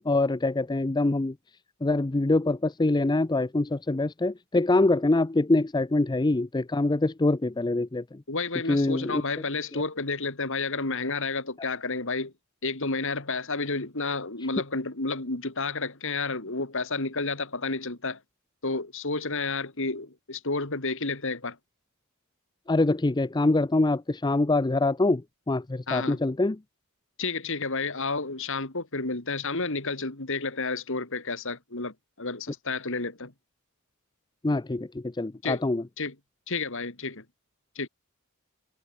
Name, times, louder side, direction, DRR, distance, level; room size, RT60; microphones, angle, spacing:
voice 1, 0.0-1.4 1.8-8.2 8.7-9.2 9.7-9.8 22.7-26.6 34.4-35.8, left 2 dB, 20° left, 0.5 m, -24 dB
voice 2, 8.3-12.3 12.6-18.2 18.6-21.6 25.9-26.2 27.2-33.3 35.4-35.6 36.0-36.1 36.5-37.2 37.8-37.9, left 3 dB, 60° left, 2.9 m, -31 dB
head